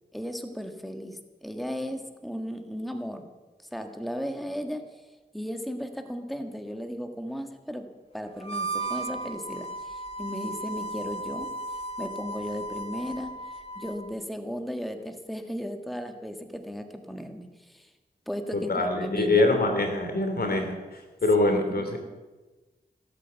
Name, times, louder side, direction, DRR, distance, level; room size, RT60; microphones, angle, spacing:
voice 1, 0.1-3.3 3.6-5.0 5.3-7.9 8.1-11.5 12.0-13.3 13.7-17.9 18.3-19.4 21.5-21.9, equal, ahead, 6 dB, 1.6 m, -35 dB
Harmonica, 8.4-14.0, right 2 dB, 35° left, 2.7 m, -35 dB
voice 2, 18.5-22.0, left 2 dB, 65° left, 5 dB, 2.9 m, -24 dB
17.0 x 8.6 x 8.1 m, 1.2 s
cardioid pair, 50°, 17 cm